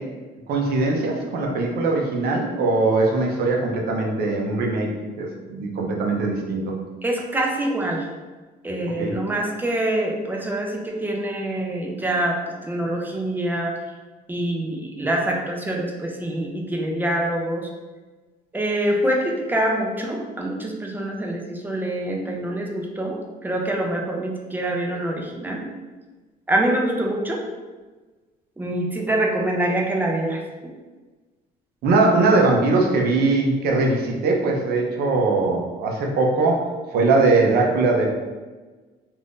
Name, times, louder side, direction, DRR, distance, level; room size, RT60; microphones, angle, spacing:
voice 1, 0.5-4.9 5.2-6.7 9.0-9.1 31.8-38.1, right 3 dB, 70° right, 0 dB, 0.7 m, -21 dB
voice 2, 7.0-8.1 8.6-13.8 14.3-17.7 18.5-25.6 26.5-27.4 28.6-30.7, right 1 dB, 10° right, 0 dB, 0.5 m, -25 dB
2.6 x 2.5 x 3.5 m, 1.3 s
cardioid pair, 110°, 17 cm